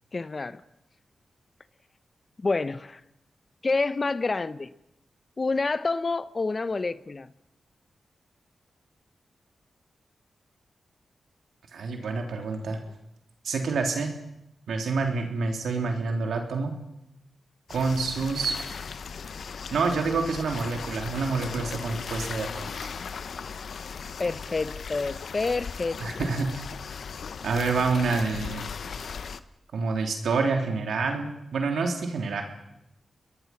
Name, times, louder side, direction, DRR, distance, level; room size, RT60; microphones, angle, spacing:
voice 1, 0.1-0.6 2.4-3.0 3.6-4.7 5.4-7.3 24.2-26.3, left 3 dB, 45° left, 1.0 m, -28 dB
voice 2, 11.7-12.8 13.4-14.1 14.7-16.7 17.7-18.5 19.7-22.9 26.0-26.6 27.4-28.7 29.7-32.4, right 4 dB, 85° right, 3.4 m, -27 dB
sound 1, 17.7-29.4, left 6 dB, 75° left, 1.0 m, -37 dB
28.5 x 21.0 x 6.0 m
cardioid pair, 45°, 0 cm